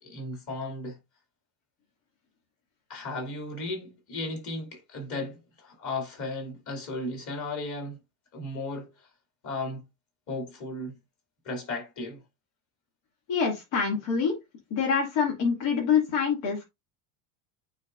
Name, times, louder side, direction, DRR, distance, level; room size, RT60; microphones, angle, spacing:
voice 1, 0.0-1.0 2.9-8.0 8.3-9.1 9.4-9.8 10.3-11.0 11.4-12.2, left 2 dB, 40° left, 2.8 m, -35 dB
voice 2, 13.3-14.4 14.7-16.6, left 6 dB, 85° left, 2.5 m, -25 dB
9.0 x 4.1 x 2.6 m
cardioid pair, 155°, 46 cm